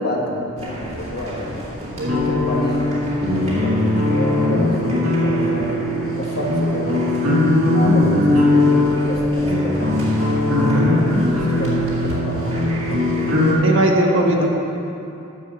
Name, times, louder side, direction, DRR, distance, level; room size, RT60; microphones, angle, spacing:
voice 1, 0.0-1.6 2.1-3.0 3.3-7.2 7.5-13.2 14.2-14.5, left 1 dB, 50° left, -1 dB, 1.5 m, -29 dB
sound 1, 0.6-13.5, equal, 30° right, 2.1 m, -33 dB
sound 2, 2.0-13.5, left 1 dB, 80° right, 2.1 m, -19 dB
voice 2, 13.6-14.5, right 1 dB, 65° right, 0 dB, 1.3 m, -18 dB
9.8 x 7.1 x 6.6 m, 2.7 s
head